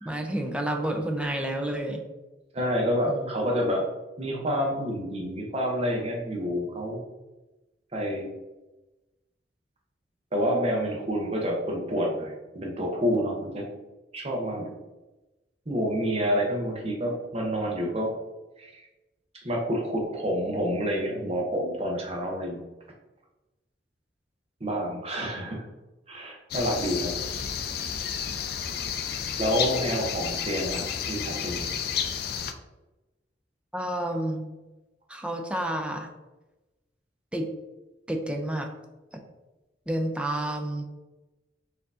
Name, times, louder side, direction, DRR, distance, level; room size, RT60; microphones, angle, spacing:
voice 1, 0.0-2.0 3.1-3.3 33.7-34.5 35.1-36.1 37.3-37.5 38.1-38.7 39.9-40.8, right 1 dB, 5° right, 3 dB, 0.4 m, -30 dB
voice 2, 2.5-3.9 4.2-7.0 7.9-8.3 10.3-13.7 14.1-14.7 15.7-18.1 18.6-18.8 19.3-22.6 24.6-25.6 26.1-27.1 29.1-31.8, equal, 35° right, 0 dB, 0.9 m, -28 dB
sound 1, 26.5-32.5, left 7 dB, 60° left, 0.4 m, -31 dB
4.4 x 2.8 x 3.6 m, 1.1 s
head